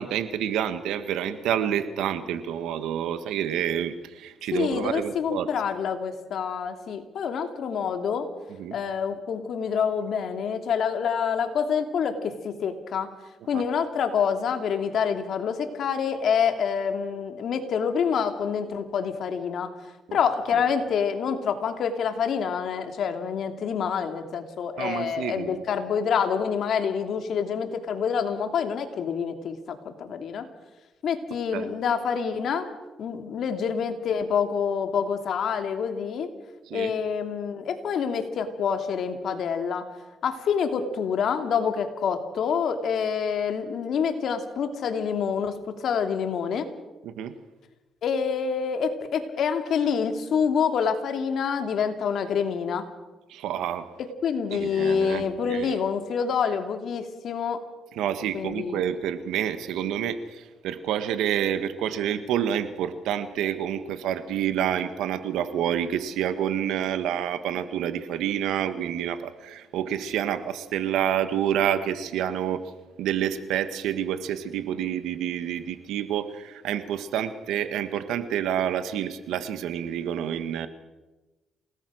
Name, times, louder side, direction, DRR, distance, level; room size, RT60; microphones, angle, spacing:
voice 1, 0.0-5.5 8.6-8.8 13.5-13.6 20.1-20.2 20.5-20.6 24.8-25.6 31.5-31.7 36.7-36.9 47.0-47.3 53.3-53.9 54.5-55.8 57.9-72.6 73.0-80.7, right 9 dB, 85° right, 10 dB, 1.6 m, -28 dB
voice 2, 4.5-8.3 8.7-13.1 13.5-19.7 20.1-30.5 31.0-32.7 33.0-36.3 36.7-39.9 40.2-46.7 48.0-52.9 54.0-57.6 58.3-59.0, left 6 dB, 65° left, 6 dB, 2.8 m, -27 dB
28.5 x 18.5 x 6.4 m, 1.1 s
cardioid pair, 90°, 0 cm